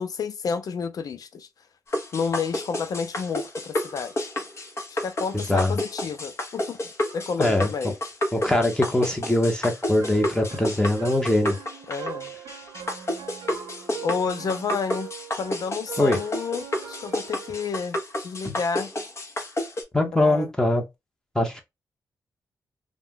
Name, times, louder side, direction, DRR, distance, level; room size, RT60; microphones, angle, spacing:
voice 1, 0.0-1.5 2.1-4.3 5.0-6.8 7.1-7.9 11.9-12.3 14.0-15.1 15.4-18.9 20.1-20.5, left 5 dB, 65° left, 0.5 m, -30 dB
sound 1, 1.9-19.8, left 1 dB, 40° left, 1.0 m, -31 dB
voice 2, 5.3-5.7 7.4-7.7 8.3-11.6 16.0-16.2 18.4-18.5 19.9-20.8 21.3-21.6, left 1 dB, 10° left, 1.0 m, -22 dB
sound 2, 10.0-17.7, right 9 dB, 85° right, 0.6 m, -41 dB
2.4 x 2.2 x 3.6 m
cardioid pair, 65°, 7 cm